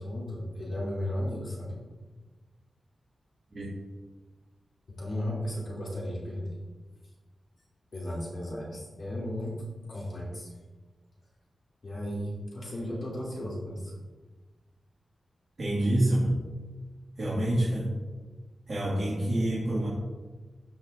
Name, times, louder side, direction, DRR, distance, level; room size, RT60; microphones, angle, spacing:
voice 1, 0.0-1.8 4.9-6.5 7.9-9.5 9.9-10.5 11.8-13.9, left 1 dB, 55° left, -5 dB, 2.7 m, -35 dB
voice 2, 15.6-16.4 17.2-17.9 18.7-19.9, right 1 dB, 50° right, -7 dB, 1.9 m, -27 dB
13.5 x 5.5 x 2.6 m, 1.3 s
wide cardioid pair, 115°, 0 cm